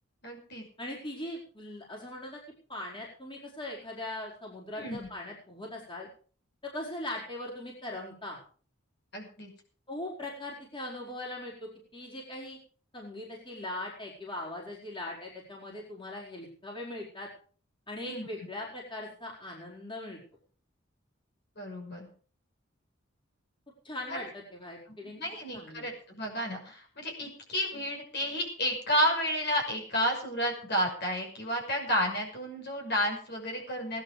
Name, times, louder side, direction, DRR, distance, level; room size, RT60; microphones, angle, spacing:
voice 1, 0.2-0.7 4.7-5.1 9.1-9.5 18.0-18.3 21.6-22.1 24.1-24.3 25.0-34.0, equal, 55° left, 2 dB, 5.8 m, -31 dB
voice 2, 0.8-2.4 2.7-6.1 6.6-8.4 9.9-12.6 12.9-17.3 17.9-20.2 23.8-25.2 25.5-25.9, left 1 dB, 25° left, -3 dB, 4.7 m, -40 dB
18.0 x 11.0 x 5.1 m, 0.43 s
head